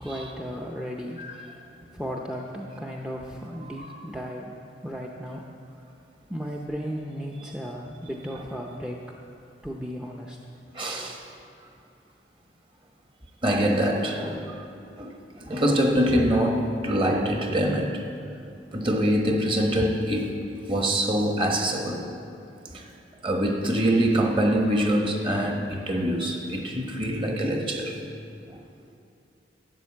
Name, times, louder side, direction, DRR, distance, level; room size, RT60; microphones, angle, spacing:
voice 1, 0.0-5.5 6.3-9.0 9.6-10.4, equal, 5° right, 0.6 m, -35 dB
voice 2, 10.7-11.2 13.4-14.6 15.0-18.1 18.7-20.4 20.6-22.0 22.6-22.9 23.2-28.0 28.5-28.6, equal, 30° right, 1.3 m, -25 dB
12.5 x 8.8 x 7.4 m
head